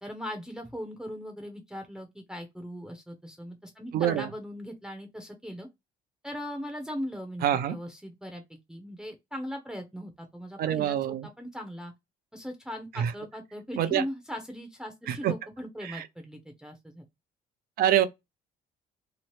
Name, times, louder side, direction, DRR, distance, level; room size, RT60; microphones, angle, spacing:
voice 1, 0.0-5.7 6.2-11.9 12.3-17.0, equal, 5° right, 0.6 m, -39 dB
voice 2, 3.9-4.3 7.4-7.8 10.6-11.3 12.9-13.1 13.8-14.0 15.1-15.3 15.8-16.1 17.8-18.1, right 11 dB, 60° right, 0.5 m, -26 dB
2.9 x 2.0 x 3.0 m
cardioid pair, 110°, 17 cm